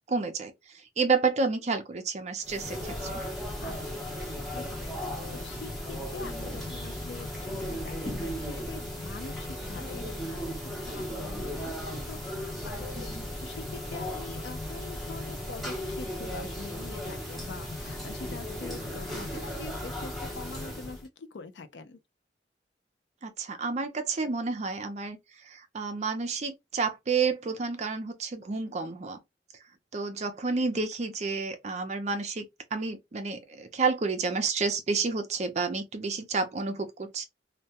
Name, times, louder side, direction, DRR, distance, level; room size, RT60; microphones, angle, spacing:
voice 1, 0.1-0.5 1.0-3.2 13.1-13.3 23.2-25.2 25.4-29.2 29.9-32.4 32.7-37.3, right 4 dB, 40° right, 0.5 m, -30 dB
sound 1, 2.4-21.1, left 1 dB, ahead, 0.7 m, -36 dB
voice 2, 3.6-10.6 10.8-22.0, left 4 dB, 85° left, 0.4 m, -45 dB
2.2 x 2.1 x 2.7 m
head